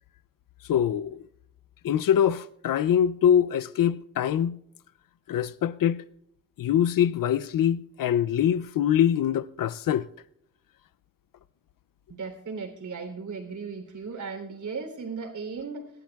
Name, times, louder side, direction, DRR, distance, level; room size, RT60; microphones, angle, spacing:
voice 1, 0.7-1.2 1.8-4.6 5.3-6.0 6.6-10.1, left 9 dB, 80° left, 0.5 m, -24 dB
voice 2, 12.1-15.9, right 5 dB, 60° right, 3.4 m, -36 dB
28.0 x 12.0 x 2.3 m
wide cardioid pair, 150°, 33 cm